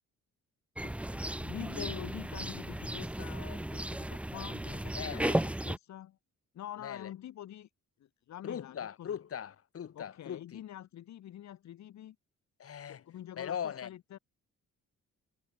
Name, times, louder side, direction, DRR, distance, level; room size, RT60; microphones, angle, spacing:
voice 1, 0.8-6.2 6.5-7.7 8.0-9.2 10.0-12.2 12.9-14.2, left 12 dB, 70° left, 1.8 m, -46 dB
sound 1, 0.8-5.8, right 1 dB, 5° right, 0.9 m, -35 dB
voice 2, 4.9-5.4 6.8-7.1 8.4-10.6 12.6-13.0 13.4-13.9, left 8 dB, 50° left, 3.5 m, -39 dB
cardioid pair, 125°, 29 cm